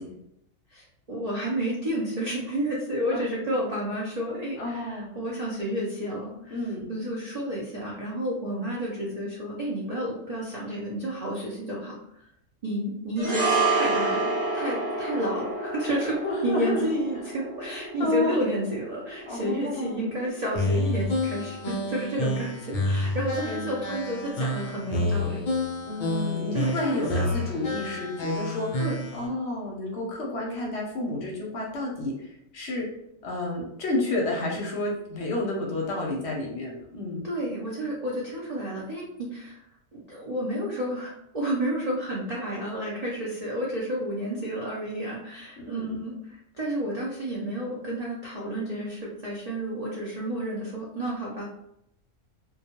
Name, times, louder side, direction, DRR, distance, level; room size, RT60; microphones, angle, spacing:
voice 1, 0.7-6.6 6.9-12.0 12.6-25.4 26.5-27.3 28.8-29.0 37.2-39.6 39.9-51.4, right 1 dB, 70° right, -5 dB, 0.3 m, -31 dB
voice 2, 4.6-5.1 6.5-6.9 16.2-16.8 18.0-18.3 19.3-20.0 23.4-23.8 25.9-32.9 33.2-37.2 45.6-46.0, left 2 dB, 60° left, -2 dB, 0.8 m, -30 dB
sound 1, 13.2-21.6 21.9-22.1, right 3 dB, 35° right, 0.9 m, -30 dB
sound 2, 20.5-29.3, left 1 dB, 85° left, 0.4 m, -29 dB
2.2 x 2.2 x 2.8 m, 0.77 s
omnidirectional pair, 1.4 m